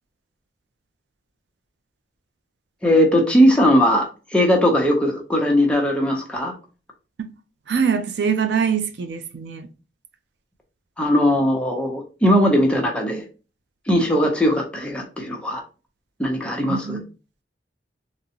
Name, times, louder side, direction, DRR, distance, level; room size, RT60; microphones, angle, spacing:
voice 1, 2.8-6.5 11.0-13.2 13.9-15.6 16.2-17.0, equal, 5° left, 0.6 m, -19 dB
voice 2, 7.7-9.7 16.7-17.0, right 6 dB, 65° right, 0.4 m, -23 dB
3.6 x 2.1 x 2.8 m
head